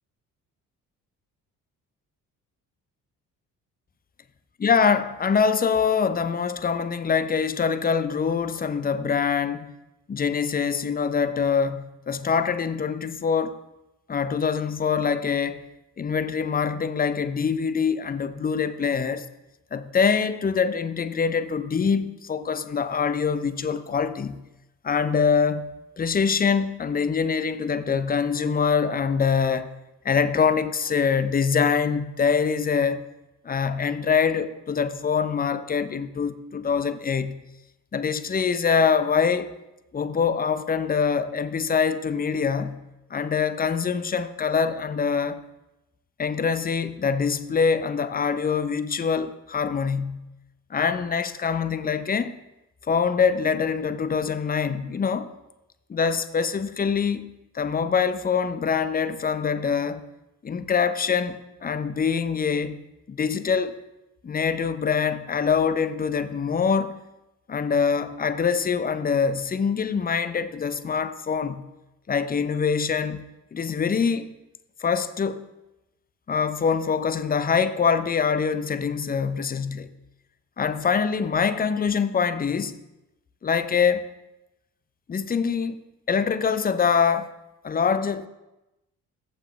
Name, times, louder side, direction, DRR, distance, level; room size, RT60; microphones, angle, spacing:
voice 1, 4.6-9.7 10.1-13.5 14.1-15.6 16.0-19.3 19.7-24.4 24.8-25.7 26.0-29.7 30.0-33.0 33.4-37.4 37.9-39.5 39.9-42.8 43.1-45.4 46.2-50.3 50.7-52.3 52.9-55.3 55.9-57.3 57.5-60.0 60.4-62.8 63.1-63.7 64.2-67.0 67.5-71.7 72.1-73.2 73.5-74.3 74.8-75.4 76.3-79.9 80.6-82.8 83.4-84.1 85.1-87.3 87.6-88.3, left 6 dB, 20° left, 0.6 m, -24 dB
14.5 x 5.5 x 3.3 m
figure-of-eight pair, 45°, 47 cm